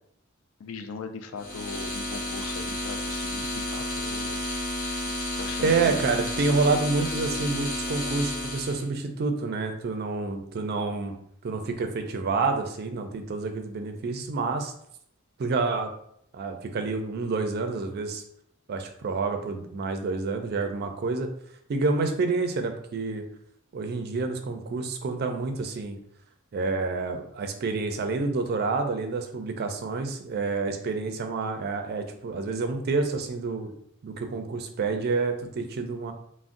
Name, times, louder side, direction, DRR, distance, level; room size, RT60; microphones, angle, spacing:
voice 1, 0.6-4.4 5.4-6.1, left 4 dB, 70° left, 7 dB, 0.4 m, -39 dB
Static Stylophone A, 1.4-8.9, left 1 dB, 45° left, 1.0 m, -31 dB
voice 2, 5.6-11.1 11.4-14.7 15.4-15.9 16.3-18.2 18.7-21.3 21.7-23.2 23.7-26.0 26.5-33.7 34.0-36.1, right 3 dB, 50° right, 6 dB, 0.4 m, -28 dB
3.6 x 2.0 x 2.5 m, 0.69 s
head